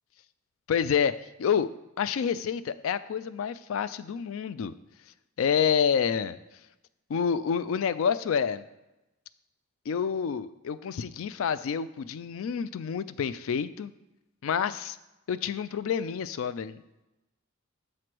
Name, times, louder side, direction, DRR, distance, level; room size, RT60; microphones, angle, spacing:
voice 1, 0.7-1.7 2.0-4.7 5.4-6.4 7.1-8.6 9.9-13.9 14.4-15.0 15.3-16.8, left 7 dB, 65° left, 15 dB, 0.3 m, -28 dB
7.6 x 3.2 x 5.9 m, 0.97 s
head